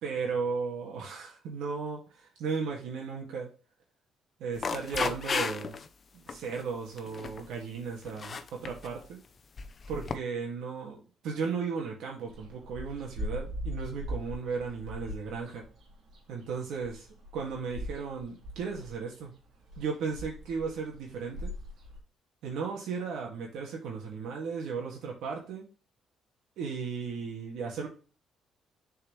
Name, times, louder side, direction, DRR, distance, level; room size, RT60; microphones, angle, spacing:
voice 1, 0.0-3.5 4.4-5.8 6.1-9.2 9.9-15.6 16.3-17.1 17.3-19.3 19.8-21.5 22.4-25.7 26.6-27.9, right 5 dB, 85° right, -1 dB, 2.0 m, -35 dB
sound 1, 4.5-5.9 6.3-6.6 7.0-7.5 8.1-8.9 9.6-10.1, left 5 dB, 40° left, 0.7 m, -34 dB
sound 2, 12.3-22.0, equal, 65° right, 2.2 m, -40 dB
6.8 x 4.7 x 3.2 m, 0.35 s
cardioid pair, 90°, 0 cm